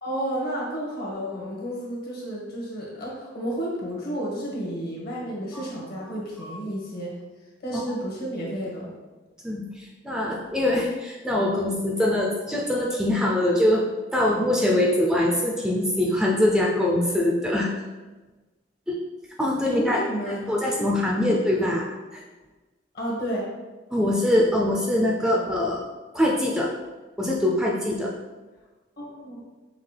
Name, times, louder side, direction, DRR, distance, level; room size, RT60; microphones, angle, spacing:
voice 1, 0.0-7.1 7.6-8.9 19.6-20.9 21.2-21.4 22.9-23.5 29.0-29.4, equal, 55° left, -4 dB, 1.3 m, -31 dB
voice 2, 9.4-13.8 14.1-17.7 18.9-19.0 19.4-21.8 22.1-22.2 23.9-25.8 26.1-26.7 27.2-28.1, left 1 dB, 5° right, -2 dB, 0.4 m, -23 dB
5.7 x 2.4 x 3.3 m, 1.2 s
head